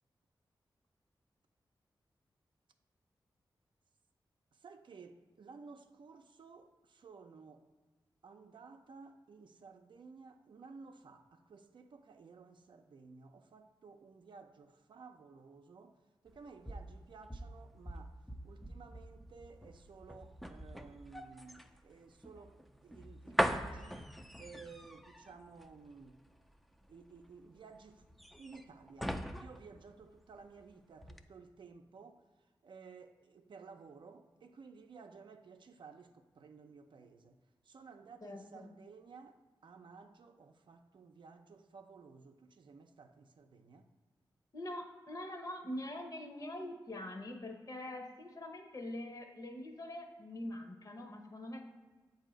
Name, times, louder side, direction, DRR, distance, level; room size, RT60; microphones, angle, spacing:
voice 1, 4.5-7.7 8.2-16.0 16.2-18.2 18.4-26.2 26.9-28.1 28.3-43.9, right 4 dB, 70° right, 0.5 m, -55 dB
sound 1, 16.3-30.6 31.0-31.2, equal, ahead, 0.4 m, -41 dB
voice 2, 38.2-38.6 44.5-51.6, left 1 dB, 45° left, 0.9 m, -44 dB
7.4 x 2.7 x 5.0 m
wide cardioid pair, 80°, 8 cm